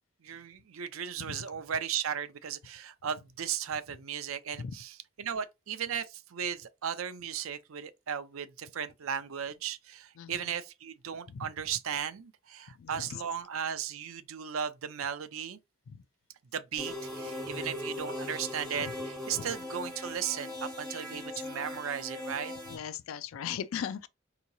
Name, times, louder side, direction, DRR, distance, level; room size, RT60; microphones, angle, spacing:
voice 1, 0.2-15.6 16.5-22.5, right 8 dB, 80° right, 0.5 m, -36 dB
voice 2, 12.8-13.1 22.7-24.1, left 8 dB, 80° left, 0.4 m, -37 dB
sound 1, 16.8-22.8, left 1 dB, 5° left, 2.4 m, -39 dB
4.6 x 2.9 x 2.6 m
head